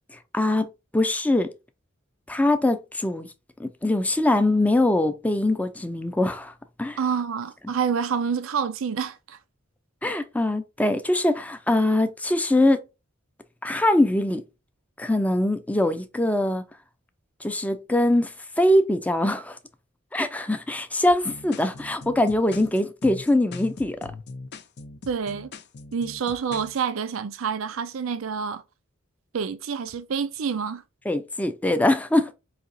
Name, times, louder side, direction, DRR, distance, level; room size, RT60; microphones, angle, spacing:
voice 1, 0.3-1.5 2.3-3.3 3.6-6.5 6.8-7.0 10.0-12.8 13.6-14.4 15.0-16.6 17.4-19.6 20.1-24.1 31.1-32.3, left 1 dB, 10° left, 0.5 m, -22 dB
voice 2, 7.0-9.4 25.1-25.5 25.9-28.6 29.3-30.8, right 6 dB, 85° right, 0.5 m, -28 dB
sound 1, 21.1-26.8, left 3 dB, 55° left, 0.6 m, -41 dB
4.9 x 2.8 x 2.6 m
head